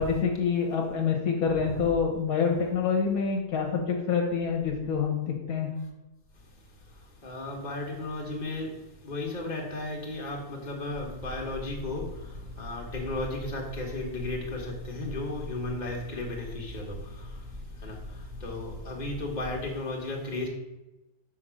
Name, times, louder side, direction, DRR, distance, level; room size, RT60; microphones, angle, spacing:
voice 1, 0.0-5.7, left 6 dB, 65° left, 0 dB, 1.4 m, -27 dB
voice 2, 1.5-1.8 6.3-20.5, left 2 dB, 30° left, -1 dB, 1.5 m, -35 dB
sound 1, 10.9-19.7, left 2 dB, 20° right, 1.7 m, -42 dB
6.4 x 4.3 x 6.2 m, 1.0 s
omnidirectional pair, 1.7 m